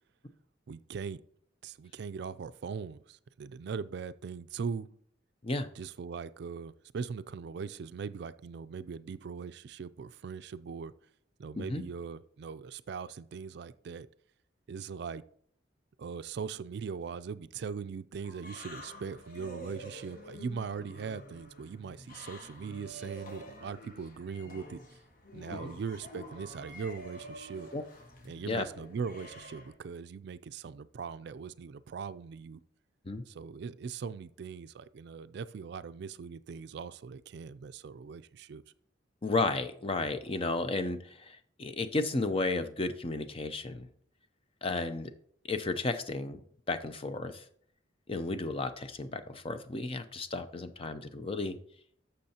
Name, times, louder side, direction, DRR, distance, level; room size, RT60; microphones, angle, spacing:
voice 1, 0.7-1.2 1.6-4.9 5.8-10.9 11.4-14.1 14.7-15.2 16.0-24.8 25.3-27.7 28.2-32.6 33.3-38.6, right 5 dB, 60° right, 13 dB, 0.4 m, -40 dB
sound 1, 18.2-29.8, equal, 50° left, 1.1 m, -48 dB
voice 2, 39.2-43.9 44.6-45.1 45.5-46.4 46.7-47.4 48.1-51.6, left 3 dB, 30° left, 9 dB, 0.6 m, -33 dB
12.0 x 6.7 x 2.8 m, 0.63 s
head